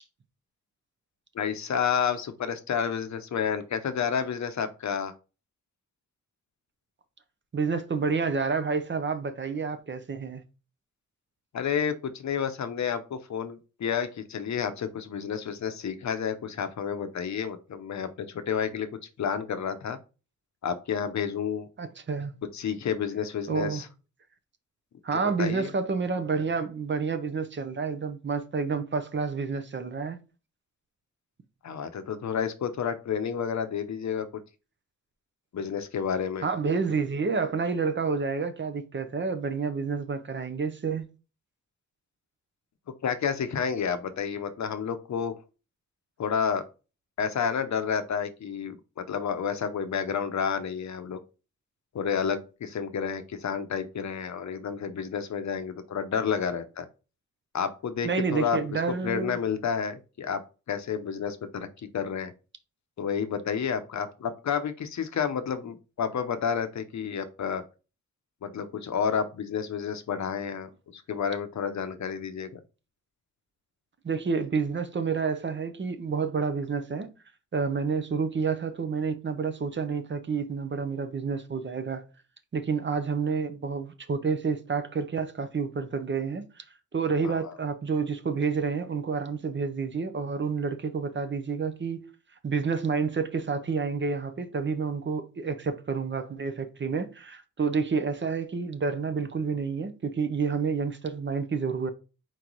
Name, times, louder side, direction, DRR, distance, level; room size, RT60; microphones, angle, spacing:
voice 1, 1.3-5.1 11.5-18.9 19.2-20.0 20.6-21.7 22.5-23.9 25.1-25.7 31.6-34.3 35.5-36.5 43.0-45.3 46.2-46.6 47.2-51.2 51.9-56.9 57.5-60.4 60.7-61.7 61.9-62.3 63.0-67.6 68.4-72.6 87.2-87.3, left 7 dB, 65° left, 0.7 m, -30 dB
voice 2, 7.5-10.4 21.8-22.4 23.5-23.8 25.0-30.2 36.4-41.1 58.0-59.4 74.0-77.1 77.5-82.0 82.5-86.6 86.9-92.1 92.4-101.9, right 5 dB, 40° right, 0.6 m, -29 dB
4.5 x 3.0 x 3.8 m
wide cardioid pair, 150°, 31 cm